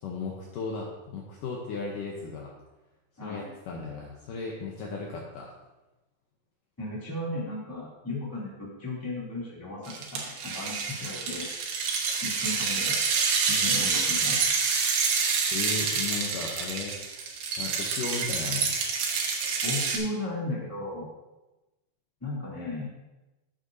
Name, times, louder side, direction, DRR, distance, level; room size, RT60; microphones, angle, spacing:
voice 1, 0.0-2.5 3.2-5.5 15.5-16.9 17.6-18.7, left 4 dB, 70° left, -2 dB, 2.2 m, -36 dB
voice 2, 6.8-11.4 12.2-13.0 13.5-14.4 19.6-21.1 22.2-22.9, left 2 dB, 5° left, -6 dB, 2.0 m, -35 dB
sound 1, 9.9-20.0, right 5 dB, 75° right, 2.9 m, -27 dB
12.5 x 7.9 x 2.7 m, 1.1 s
omnidirectional pair, 4.6 m